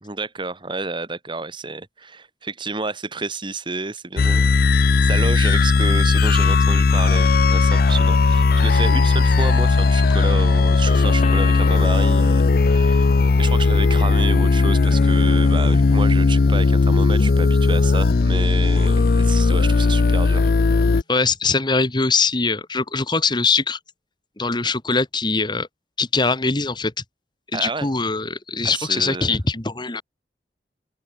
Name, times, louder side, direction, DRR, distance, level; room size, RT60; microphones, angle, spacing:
voice 1, 0.0-20.5 27.5-27.9 28.6-29.4, right 3 dB, 30° right, 2.0 m, -30 dB
sound 1, 4.2-21.0, left 4 dB, 55° left, 0.5 m, -17 dB
sound 2, 11.2-16.9 17.2-17.9, left 5 dB, 40° left, 6.2 m, -38 dB
voice 2, 21.1-23.8 24.4-25.7 26.0-26.9 27.5-30.0, left 4 dB, 25° left, 1.4 m, -22 dB
open air
head